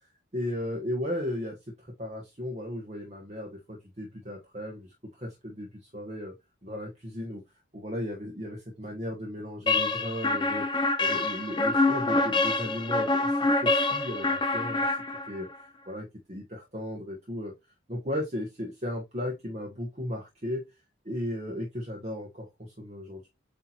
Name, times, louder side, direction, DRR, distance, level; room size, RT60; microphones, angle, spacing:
voice 1, 0.3-6.3 6.6-7.4 7.7-15.0 15.3-17.5 17.9-20.6 21.0-23.3, left 1 dB, 35° right, 0 dB, 1.2 m, -36 dB
sound 1, 9.7-15.5, left 2 dB, 25° left, 0.8 m, -26 dB
8.2 x 2.9 x 4.3 m, 0.23 s
head